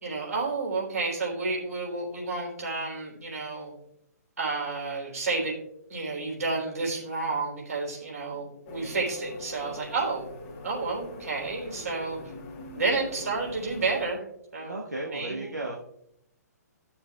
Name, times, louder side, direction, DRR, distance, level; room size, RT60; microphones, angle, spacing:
voice 1, 0.0-3.7 4.4-5.6 5.9-10.3 10.6-12.2 12.7-14.3 14.5-14.8 15.1-15.5, right 3 dB, 60° right, -3 dB, 3.6 m, -30 dB
voice 2, 7.8-8.5 14.6-15.8, right 2 dB, 85° right, -2 dB, 1.2 m, -36 dB
sound 1, 8.7-14.1, left 2 dB, 30° left, 1.3 m, -42 dB
14.5 x 7.1 x 2.3 m, 0.76 s
figure-of-eight pair, 125°, 9 cm